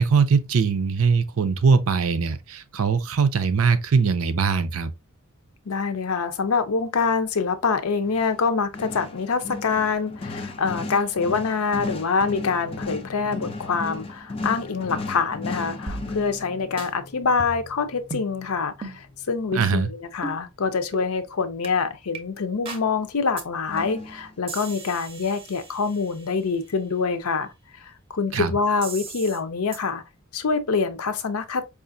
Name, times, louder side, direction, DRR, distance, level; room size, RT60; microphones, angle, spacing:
voice 1, 0.0-4.9 19.5-19.9 28.3-28.5, right 5 dB, 65° right, 0.5 m, -21 dB
voice 2, 5.7-27.5 27.8-30.0 30.3-31.6, left 5 dB, 75° left, 0.6 m, -25 dB
sound 1, 8.0-18.9 23.7-24.4, left 3 dB, 25° left, 0.4 m, -36 dB
sound 2, 15.9-16.5 16.8-16.9 17.4-17.8 18.1-18.3 18.8-19.0 19.5-19.8 20.2-20.4 20.9-21.1 21.6-21.7 22.1-22.2 22.7-22.9 23.4-23.5 23.8-24.1 24.5-26.3 28.8-29.4 29.7-29.8, right 3 dB, 25° right, 0.6 m, -37 dB
4.8 x 2.4 x 2.6 m
head